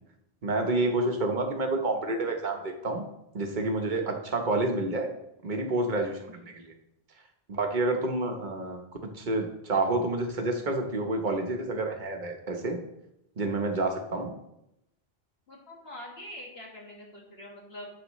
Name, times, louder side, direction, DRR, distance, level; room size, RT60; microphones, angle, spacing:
voice 1, 0.4-3.0 3.3-5.1 5.4-6.7 7.5-12.8 13.4-14.3, right 2 dB, 50° right, 3 dB, 1.2 m, -29 dB
voice 2, 15.5-17.9, left 1 dB, 70° left, -2 dB, 2.2 m, -44 dB
9.9 x 7.0 x 3.1 m, 0.84 s
omnidirectional pair, 1.1 m